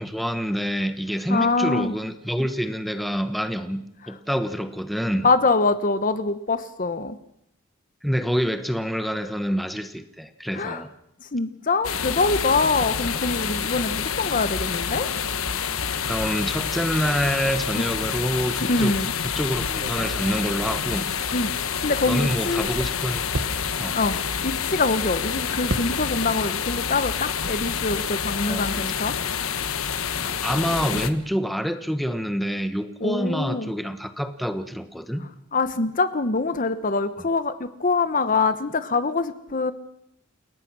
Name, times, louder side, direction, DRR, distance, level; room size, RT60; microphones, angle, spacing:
voice 1, 0.0-5.3 8.0-10.9 16.0-19.0 19.3-21.1 22.0-23.5 23.8-24.0 28.4-28.6 30.2-35.3, equal, ahead, 9 dB, 1.2 m, -27 dB
voice 2, 1.3-1.9 5.2-7.2 10.5-10.8 11.2-15.1 17.8-17.9 18.7-19.1 21.3-21.5 21.8-22.7 23.9-24.2 24.4-29.2 30.9-31.0 33.0-33.7 35.5-39.7, left 3 dB, 40° left, 12 dB, 1.0 m, -24 dB
sound 1, 11.8-31.1, left 7 dB, 85° left, 1.3 m, -28 dB
sound 2, 19.4-22.1 22.4-26.5 26.7-28.0, right 1 dB, 55° right, 1.5 m, -36 dB
29.5 x 17.5 x 6.1 m, 0.76 s
head